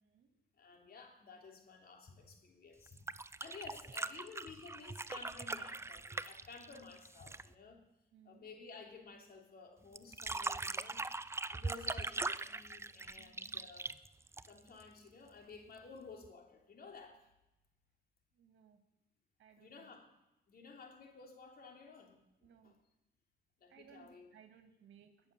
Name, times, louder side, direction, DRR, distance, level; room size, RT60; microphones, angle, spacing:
voice 1, 0.0-0.3 8.1-8.5 13.2-13.7 18.3-18.8 19.4-19.9 22.4-22.7 23.7-25.3, right 8 dB, 75° right, 6 dB, 2.3 m, -63 dB
voice 2, 0.5-7.8 8.2-11.0 11.5-14.0 14.4-17.3 19.6-20.1 20.5-22.2 22.6-22.8 23.6-24.3, left 4 dB, 50° left, 2 dB, 3.2 m, -54 dB
sound 1, 2.9-7.5 10.0-14.8 16.2-16.3, right 3 dB, 15° right, 0.4 m, -41 dB
21.0 x 7.2 x 6.9 m, 0.94 s
cardioid pair, 90°, 20 cm